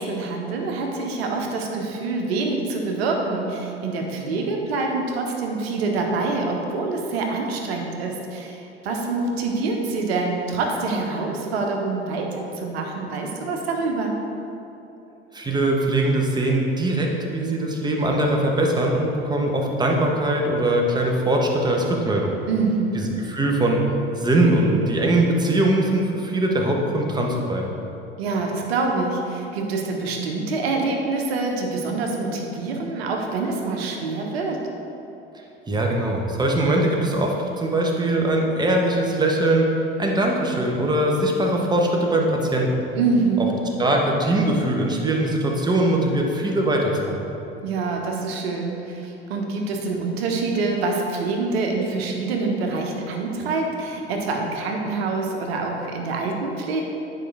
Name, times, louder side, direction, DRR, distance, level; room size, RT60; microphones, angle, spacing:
voice 1, 0.0-14.2 22.5-23.0 28.2-34.6 43.0-43.5 47.6-56.8, right 3 dB, 65° right, 1 dB, 1.2 m, -26 dB
voice 2, 15.3-22.3 22.9-23.8 24.2-27.7 35.7-39.7 40.0-42.7 43.4-43.5 43.8-47.2, right 1 dB, 15° right, 0 dB, 1.1 m, -21 dB
9.9 x 5.1 x 3.4 m, 3.0 s
figure-of-eight pair, 75°, 33 cm